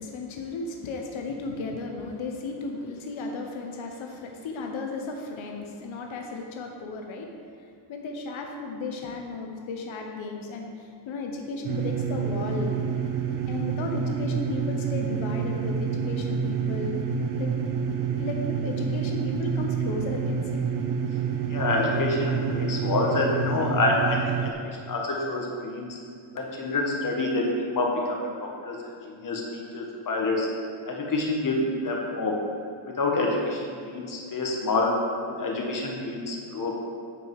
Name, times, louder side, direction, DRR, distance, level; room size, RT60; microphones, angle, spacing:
voice 1, 0.0-7.3 7.9-12.8 13.5-17.0 17.4-17.5 18.0-20.6, left 3 dB, 90° left, 2 dB, 0.9 m, -34 dB
sound 1, 11.6-24.5, right 6 dB, 45° right, 0.5 m, -28 dB
voice 2, 21.5-24.6 24.8-26.0 26.3-28.8 29.0-30.5 30.9-32.4 32.9-35.0 35.3-36.7, left 2 dB, 45° left, -1 dB, 1.3 m, -27 dB
8.8 x 5.4 x 4.7 m, 2.3 s
wide cardioid pair, 175°, 46 cm